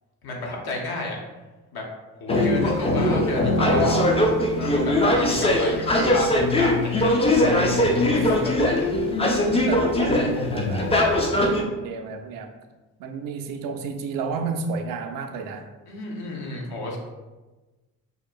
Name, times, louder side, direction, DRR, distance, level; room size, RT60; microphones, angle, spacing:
voice 1, 0.2-1.2 1.7-1.8 2.2-4.1 4.6-6.7 7.0-7.1 7.8-8.5 15.9-17.0, left 2 dB, 55° left, -1 dB, 0.8 m, -31 dB
sound 1, 2.3-11.6, left 1 dB, 15° left, 0.4 m, -21 dB
voice 2, 5.0-5.3 8.1-8.3 9.5-10.9 11.2-12.5 13.0-15.7, right 5 dB, 50° right, 5 dB, 0.4 m, -31 dB
2.8 x 2.3 x 2.2 m, 1.2 s
hypercardioid pair, 45°, 46 cm